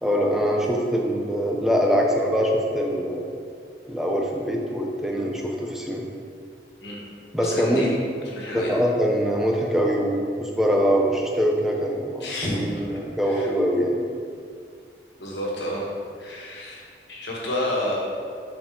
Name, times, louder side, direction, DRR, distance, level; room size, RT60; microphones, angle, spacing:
voice 1, 0.0-3.2 3.9-6.0 7.3-7.8 8.5-14.0, equal, ahead, -1 dB, 0.6 m, -23 dB
voice 2, 7.4-7.9 8.3-8.7 12.2-12.6 13.3-13.5 15.2-15.9 16.2-18.0, left 1 dB, 85° left, -4 dB, 1.4 m, -30 dB
5.7 x 4.4 x 3.8 m, 2.2 s
head